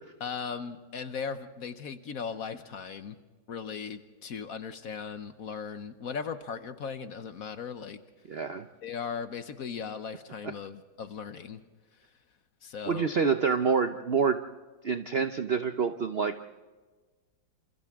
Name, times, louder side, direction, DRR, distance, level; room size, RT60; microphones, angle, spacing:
voice 1, 0.2-3.2 3.5-8.0 8.8-11.6 12.6-13.1, left 6 dB, 55° left, 10 dB, 1.1 m, -38 dB
voice 2, 8.3-8.7 12.9-14.4 14.8-16.4, right 6 dB, 65° right, 8 dB, 0.6 m, -27 dB
28.0 x 27.5 x 3.6 m, 1.3 s
omnidirectional pair, 2.1 m